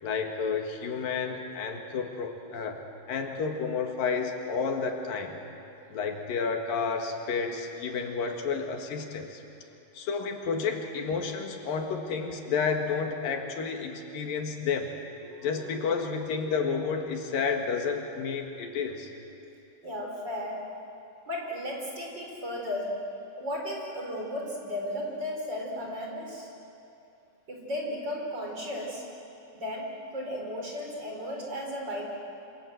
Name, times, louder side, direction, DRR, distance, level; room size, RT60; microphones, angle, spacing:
voice 1, 0.0-2.8 3.1-5.4 5.9-9.4 9.9-14.9 15.4-19.1, left 5 dB, 80° left, 3 dB, 3.6 m, -31 dB
voice 2, 15.2-15.8 19.8-20.8 21.3-26.5 27.5-29.1 29.5-32.2, left 1 dB, 30° right, 0 dB, 4.6 m, -35 dB
27.5 x 26.0 x 7.9 m, 2.8 s
omnidirectional pair, 4.0 m